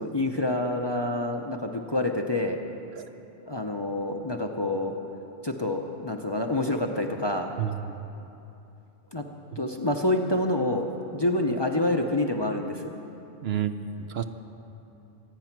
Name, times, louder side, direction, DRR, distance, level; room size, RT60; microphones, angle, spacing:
voice 1, 0.0-2.6 3.5-4.9 5.4-7.5 9.1-9.3 9.6-10.9 11.1-12.9, left 1 dB, 25° left, 3 dB, 0.7 m, -27 dB
voice 2, 7.6-8.0 13.4-14.2, right 9 dB, 65° right, 9 dB, 0.8 m, -30 dB
25.0 x 9.1 x 6.0 m, 2.8 s
omnidirectional pair, 1.2 m